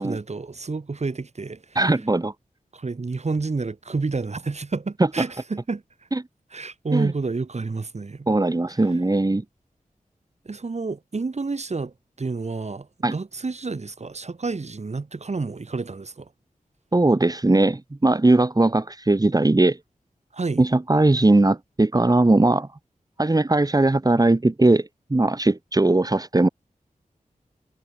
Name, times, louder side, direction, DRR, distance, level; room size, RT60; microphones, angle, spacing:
voice 1, 0.0-1.8 2.7-5.8 6.5-8.3 10.4-16.3 20.3-20.6, right 3 dB, 55° right, 3.5 m, -29 dB
voice 2, 1.8-2.3 6.1-6.2 6.9-7.1 8.3-9.4 13.0-13.1 16.9-19.8 20.6-22.7 23.2-26.5, right 2 dB, 25° right, 2.3 m, -19 dB
wide cardioid pair, 80°, 14 cm